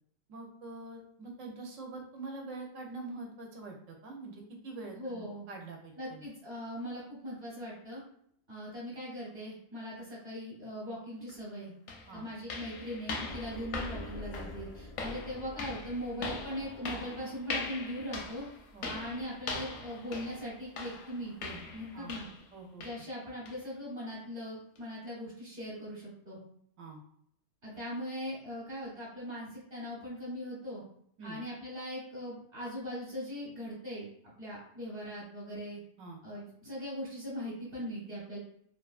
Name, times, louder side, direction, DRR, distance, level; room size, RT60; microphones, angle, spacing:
voice 1, 0.3-6.2 12.1-12.3 18.7-19.0 21.9-22.1 22.5-22.9 26.8-27.0 31.2-31.4 36.0-36.2, right 3 dB, 80° right, 1 dB, 1.1 m, -44 dB
voice 2, 4.9-5.5 6.0-8.0 8.5-11.7 12.1-18.4 18.8-22.3 22.8-26.4 27.6-30.8 31.2-34.1 34.4-35.8 36.2-38.4, equal, 45° right, -6 dB, 1.1 m, -40 dB
sound 1, 11.3-11.4 11.9-22.5 22.8-23.1 23.5-23.6 24.1-24.2 24.8-24.9, left 3 dB, 85° left, 1.0 m, -41 dB
sound 2, 13.3-17.0, left 1 dB, 55° left, 0.4 m, -46 dB
3.0 x 2.2 x 2.4 m, 0.68 s
omnidirectional pair, 1.4 m